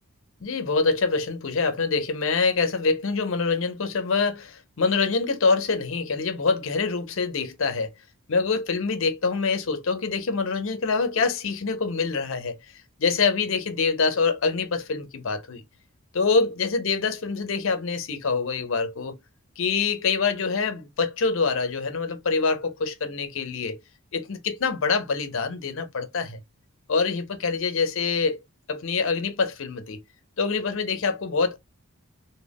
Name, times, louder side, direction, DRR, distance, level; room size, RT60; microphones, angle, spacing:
voice 1, 0.4-7.9 8.3-12.6 13.0-15.6 16.1-19.2 19.6-23.8 24.1-26.4 26.9-28.4 28.7-30.0 30.4-31.6, left 4 dB, 60° left, 0.6 m, -25 dB
2.3 x 2.2 x 3.4 m
head